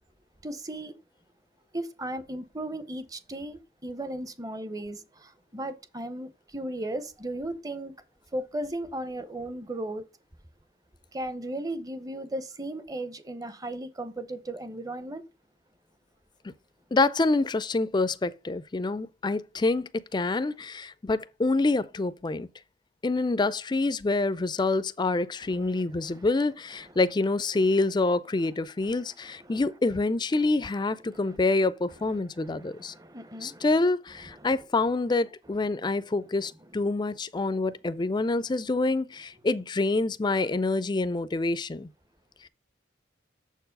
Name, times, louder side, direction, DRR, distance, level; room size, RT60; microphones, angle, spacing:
voice 1, 0.4-0.9 1.7-7.9 8.3-10.0 11.1-15.2 26.2-26.3 32.4-33.7, right 1 dB, 20° right, 0.7 m, -36 dB
voice 2, 16.9-22.5 23.0-32.9 33.4-41.9, left 3 dB, 25° left, 0.4 m, -26 dB
7.0 x 4.6 x 5.2 m
head